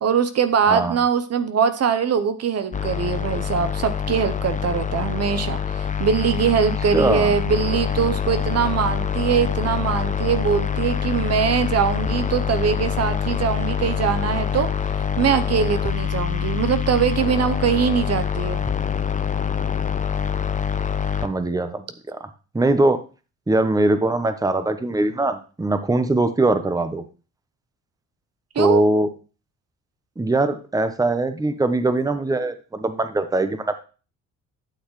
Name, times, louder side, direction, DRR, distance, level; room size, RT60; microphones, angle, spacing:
voice 1, 0.0-14.7 15.2-18.6 28.5-28.8, right 7 dB, 55° right, 10 dB, 0.8 m, -22 dB
sound 1, 2.7-21.3, left 7 dB, 25° left, 0.8 m, -25 dB
voice 2, 6.9-7.3 21.2-22.3 22.5-23.0 23.5-27.0 28.6-29.1 30.2-33.8, right 2 dB, 10° right, 10 dB, 0.9 m, -21 dB
11.5 x 6.4 x 3.2 m, 0.35 s
cardioid pair, 85°, 30 cm